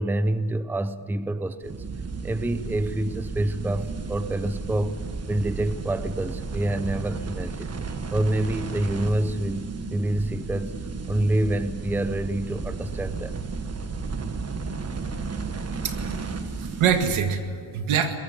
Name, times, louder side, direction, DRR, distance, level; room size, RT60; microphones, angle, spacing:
voice 1, 0.0-1.8 2.2-5.0 5.3-10.8 11.1-13.4, right 1 dB, 5° right, 13 dB, 0.6 m, -27 dB
sound 1, 1.6-17.2, right 4 dB, 30° right, 1.4 m, -33 dB
voice 2, 15.8-18.2, right 7 dB, 85° right, 7 dB, 2.1 m, -25 dB
21.5 x 15.0 x 9.7 m, 2.1 s
cardioid pair, 125°, 48 cm